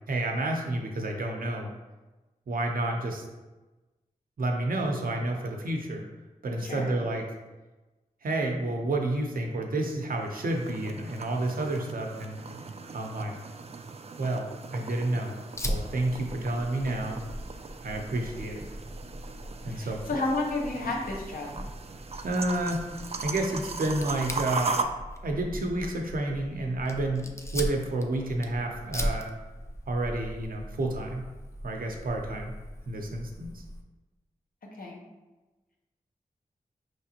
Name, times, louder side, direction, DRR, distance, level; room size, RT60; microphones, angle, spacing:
voice 1, 0.1-1.7 2.5-3.2 4.4-6.1 6.4-7.2 8.2-12.4 12.9-13.3 14.2-15.4 15.6-17.2 17.8-18.6 19.6-20.0 22.2-22.8 23.2-24.9 25.2-29.3 29.9-31.3 31.6-32.5 32.9-33.6, right 2 dB, 85° right, 2 dB, 0.7 m, -30 dB
voice 2, 6.6-6.9 19.7-21.6 34.8-35.0, left 2 dB, 80° left, -2 dB, 1.0 m, -31 dB
sound 1, 10.0-24.8, right 4 dB, 45° right, 0.4 m, -39 dB
Fire, 15.5-33.8, equal, 20° left, 0.5 m, -39 dB
5.1 x 3.2 x 2.8 m, 1.1 s
wide cardioid pair, 65°, 14 cm